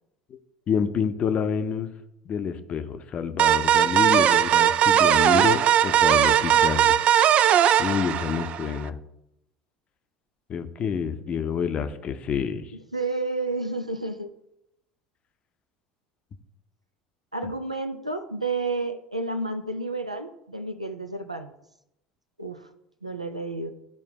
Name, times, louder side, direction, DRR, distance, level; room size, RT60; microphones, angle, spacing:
voice 1, 0.7-1.9 2.3-7.0 7.8-9.0 10.5-12.7, left 7 dB, 35° left, 10 dB, 0.7 m, -28 dB
A Sharp Lead, 3.4-8.8, right 10 dB, 40° right, 0.3 m, -19 dB
voice 2, 12.9-14.3 17.3-21.5 22.4-22.7 23.0-23.7, right 3 dB, 90° right, 7 dB, 0.6 m, -30 dB
13.0 x 4.4 x 2.9 m, 0.82 s
figure-of-eight pair, 70°, 3 cm